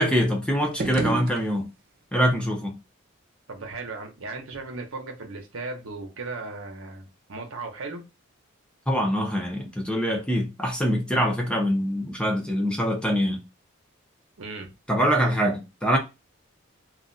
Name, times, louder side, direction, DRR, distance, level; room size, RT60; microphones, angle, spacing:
voice 1, 0.0-1.7 2.1-2.8 8.9-13.4 14.9-16.0, equal, 5° left, 0.6 m, -24 dB
sound 1, 0.6-2.0, right 3 dB, 45° right, 0.3 m, -32 dB
voice 2, 3.5-8.0 14.4-14.7, right 3 dB, 85° right, 0.9 m, -36 dB
2.4 x 2.2 x 3.9 m
head